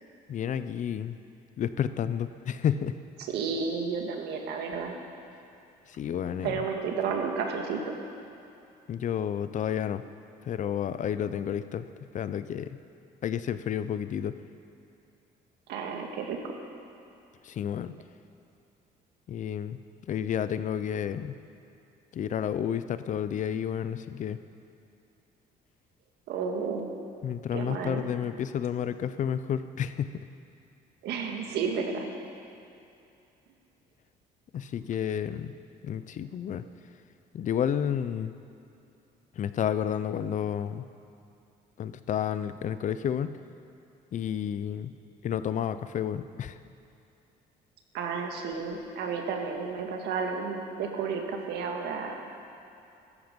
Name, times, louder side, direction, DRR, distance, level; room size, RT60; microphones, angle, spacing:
voice 1, 0.3-1.2 1.6-3.0 5.9-6.6 8.9-10.0 10.4-11.9 12.1-12.7 13.2-14.3 17.4-17.9 19.3-19.8 20.1-21.3 22.1-24.4 27.2-30.1 34.5-35.5 35.8-36.6 37.3-38.3 39.4-40.8 41.8-43.3 44.1-44.9 45.2-46.6, left 9 dB, 50° left, 12 dB, 0.6 m, -30 dB
voice 2, 3.2-5.0 6.4-7.9 15.7-16.5 26.3-26.9 27.5-28.0 31.0-32.1 47.9-52.3, right 5 dB, 80° right, 2 dB, 1.9 m, -32 dB
16.0 x 13.5 x 5.3 m, 2.7 s
cardioid pair, 110°, 17 cm